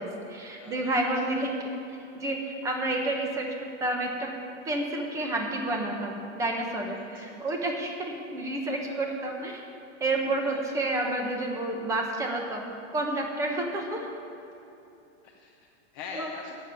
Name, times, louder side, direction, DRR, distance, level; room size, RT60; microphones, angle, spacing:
voice 1, 0.0-1.7 2.1-3.5 3.8-4.3 4.6-9.6 10.0-14.1 16.1-16.3, right 2 dB, 10° right, 1 dB, 1.1 m, -30 dB
voice 2, 0.6-1.0 6.9-7.7 10.3-10.9 15.2-16.6, left 5 dB, 20° left, 0 dB, 0.5 m, -44 dB
15.0 x 7.1 x 9.0 m, 2.8 s
supercardioid pair, 175°, 36 cm